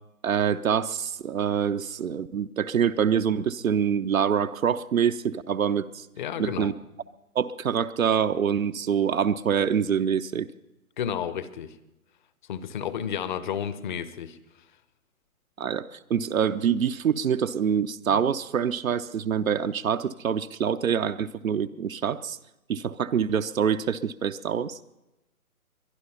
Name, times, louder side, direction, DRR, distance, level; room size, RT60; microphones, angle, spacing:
voice 1, 0.2-6.1 6.4-6.7 7.3-10.5 15.6-22.4 22.7-24.8, right 8 dB, 65° right, 9 dB, 0.8 m, -25 dB
voice 2, 6.2-6.7 11.0-11.8 12.5-14.4, left 8 dB, 35° left, 14 dB, 0.9 m, -31 dB
22.5 x 11.0 x 5.7 m, 0.94 s
figure-of-eight pair, 135°, 43 cm